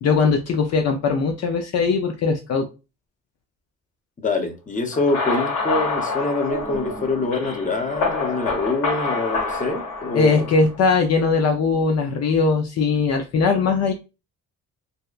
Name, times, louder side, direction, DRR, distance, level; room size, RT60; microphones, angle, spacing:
voice 1, 0.0-2.7 10.1-13.9, left 4 dB, 55° left, 0.5 m, -20 dB
voice 2, 4.2-10.5, left 3 dB, 25° left, 0.7 m, -25 dB
sound 1, 4.9-10.7, left 3 dB, 90° left, 1.4 m, -27 dB
2.7 x 2.2 x 2.3 m
cardioid pair, 90°, 30 cm